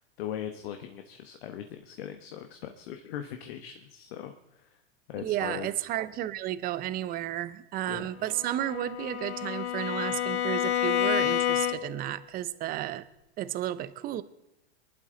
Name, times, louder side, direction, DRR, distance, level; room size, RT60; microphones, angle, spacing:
voice 1, 0.0-4.8 5.1-5.7 7.9-8.1, left 10 dB, 65° left, 6 dB, 1.2 m, -40 dB
voice 2, 5.2-13.0 13.4-14.2, right 13 dB, 25° right, 15 dB, 0.6 m, -32 dB
Bowed string instrument, 8.3-12.1, left 11 dB, 90° left, 0.9 m, -29 dB
23.5 x 11.5 x 3.9 m, 0.88 s
supercardioid pair, 130°, 32 cm